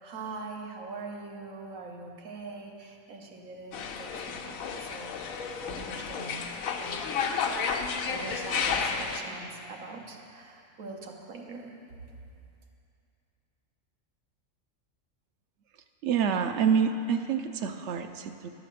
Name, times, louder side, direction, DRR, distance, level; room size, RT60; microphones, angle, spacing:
voice 1, 0.0-5.3 5.7-6.4 6.8-7.0 8.1-11.8, right 3 dB, 90° right, 1 dB, 1.4 m, -42 dB
sound 1, 3.7-9.2, left 5 dB, 90° left, 1.1 m, -32 dB
voice 2, 16.0-18.5, right 7 dB, 65° right, 7 dB, 0.8 m, -27 dB
11.0 x 5.0 x 7.6 m, 2.5 s
omnidirectional pair, 1.4 m